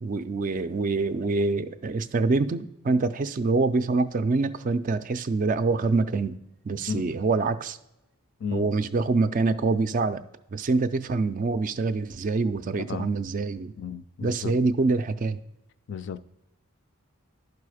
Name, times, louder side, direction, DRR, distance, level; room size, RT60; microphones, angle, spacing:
voice 1, 0.0-6.4 6.6-7.8 8.5-10.2 10.5-13.7 14.2-15.4, right 3 dB, 35° right, 0.3 m, -25 dB
voice 2, 13.8-14.6 15.9-16.2, left 7 dB, 50° left, 0.3 m, -34 dB
11.0 x 4.7 x 4.9 m
head